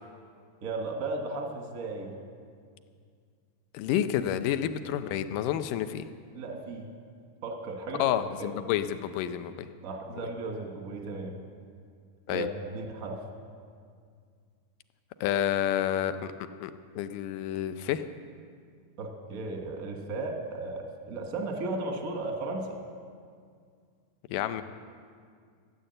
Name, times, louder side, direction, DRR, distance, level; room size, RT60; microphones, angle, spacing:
voice 1, 0.6-2.2 4.6-4.7 6.3-6.9 7.4-8.1 8.4-8.5 9.8-11.4 12.3-13.2 19.0-22.8, right 2 dB, 55° right, 2 dB, 0.9 m, -35 dB
voice 2, 3.7-6.1 8.0-9.7 12.3-12.5 15.2-16.3 16.6-18.0 24.3-24.6, left 10 dB, 85° left, 11 dB, 2.3 m, -29 dB
14.5 x 10.0 x 7.7 m, 2.1 s
omnidirectional pair, 3.7 m